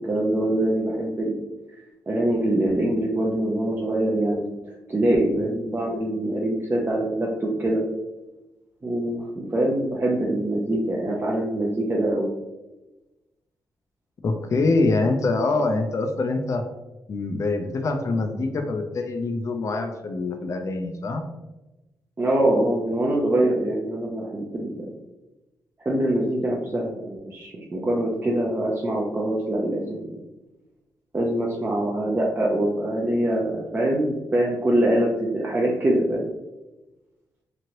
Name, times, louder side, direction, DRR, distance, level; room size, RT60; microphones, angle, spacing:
voice 1, 0.1-1.4 2.1-7.8 8.8-12.3 22.2-24.9 25.8-30.1 31.1-36.3, right 1 dB, 30° right, -3 dB, 0.5 m, -24 dB
voice 2, 14.2-16.6 17.1-21.2, left 3 dB, 45° left, 5 dB, 0.4 m, -24 dB
3.0 x 2.5 x 2.8 m, 1.0 s
cardioid pair, 75°, 7 cm